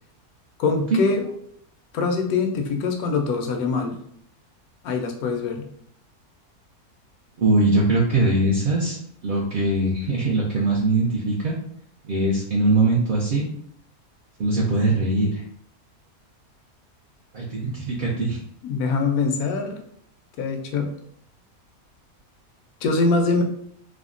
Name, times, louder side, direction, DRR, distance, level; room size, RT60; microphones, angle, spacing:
voice 1, 0.6-1.3 1.9-4.0 4.8-5.7 18.6-19.8 20.4-20.9 22.8-23.4, left 4 dB, 90° left, 4 dB, 1.1 m, -23 dB
voice 2, 7.4-9.0 9.2-11.5 12.1-13.5 14.4-15.4 17.3-18.4, right 2 dB, 70° right, -4 dB, 0.5 m, -21 dB
3.4 x 2.0 x 2.4 m, 0.67 s
omnidirectional pair, 1.5 m